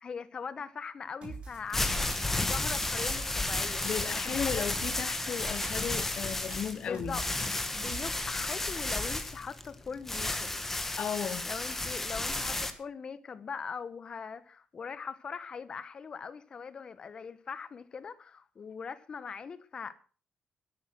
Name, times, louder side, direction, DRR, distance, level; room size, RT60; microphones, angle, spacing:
voice 1, 0.0-3.8 4.1-4.7 6.8-10.5 11.5-19.9, left 6 dB, 40° left, 1.1 m, -41 dB
sound 1, 1.2-1.6 2.1-2.5 3.0-3.4 3.8-5.1 5.6-8.3, right 5 dB, 50° right, 5.4 m, -45 dB
sound 2, 1.5-12.7, left 2 dB, 15° left, 1.6 m, -33 dB
voice 2, 3.8-7.2 11.0-11.5, left 8 dB, 55° left, 0.9 m, -35 dB
12.5 x 10.5 x 6.2 m
cardioid pair, 120°, 2 cm